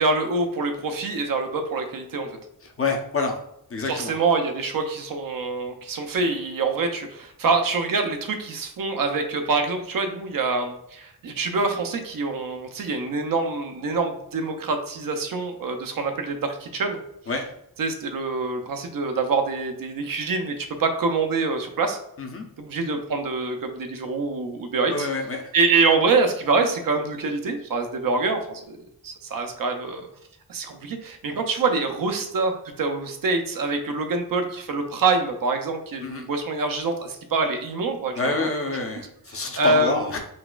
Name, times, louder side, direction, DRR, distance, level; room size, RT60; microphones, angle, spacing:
voice 1, 0.0-2.4 3.9-17.0 17.8-22.0 22.6-25.1 25.5-28.8 29.0-30.0 30.5-38.8 39.6-40.2, right 3 dB, 65° right, 5 dB, 0.5 m, -25 dB
voice 2, 2.6-3.3 3.7-4.1 17.3-17.4 22.2-22.4 24.9-25.4 36.0-36.3 38.2-40.2, left 3 dB, 40° left, 3 dB, 0.5 m, -27 dB
3.9 x 2.3 x 2.3 m, 0.75 s
wide cardioid pair, 105°, 37 cm